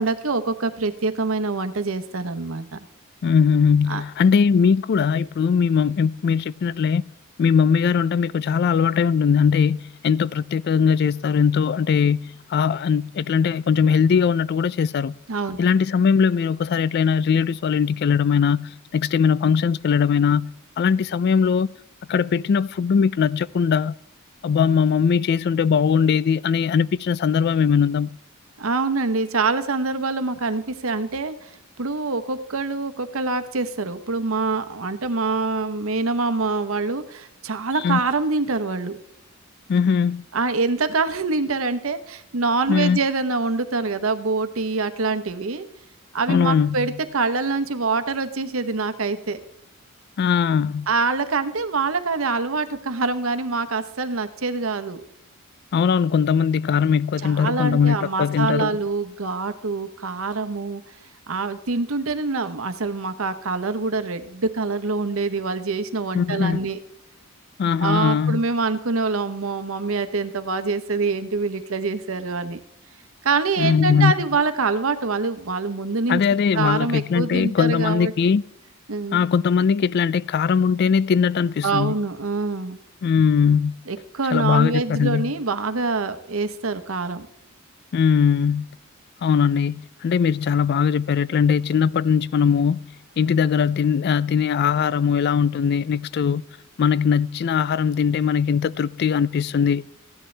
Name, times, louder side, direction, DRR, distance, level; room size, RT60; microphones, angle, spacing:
voice 1, 0.0-2.8 3.9-4.0 15.3-15.6 28.6-39.0 40.3-45.7 46.1-49.4 50.9-55.1 57.2-60.8 61.3-66.8 67.8-72.6 73.2-76.2 76.5-78.1 78.9-79.2 81.6-82.8 83.9-87.3, right 3 dB, 75° right, 1.0 m, -25 dB
voice 2, 3.2-7.0 7.4-15.1 15.6-21.7 22.1-23.9 24.4-28.2 37.8-38.0 39.7-40.2 42.7-43.0 46.3-46.9 50.2-50.9 55.7-58.8 66.1-66.6 67.6-68.4 73.6-74.1 76.1-78.4 79.1-81.9 83.0-83.8 84.3-85.3 87.9-88.7 89.2-96.4 96.8-99.9, left 6 dB, 50° left, 0.3 m, -20 dB
15.5 x 10.5 x 3.3 m
head